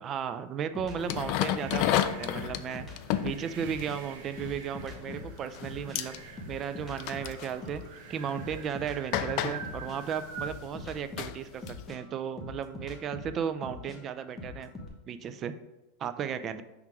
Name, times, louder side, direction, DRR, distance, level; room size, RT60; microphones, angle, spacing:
voice 1, 0.0-2.8 3.2-6.2 6.5-7.8 8.1-14.7 15.1-15.5 16.0-16.6, right 8 dB, 30° right, 10 dB, 0.4 m, -35 dB
sound 1, 0.7-4.0 4.3-7.9 8.4-14.9, left 2 dB, 10° left, 1.0 m, -43 dB
sound 2, 0.8-10.6, right 6 dB, 65° right, 0.9 m, -46 dB
sound 3, 1.0-5.2 5.5-5.7 6.0-6.2 7.0-7.6 8.3-8.4 9.1-11.9, left 11 dB, 50° left, 0.3 m, -32 dB
5.9 x 3.6 x 4.7 m, 0.99 s
supercardioid pair, 145°, 0 cm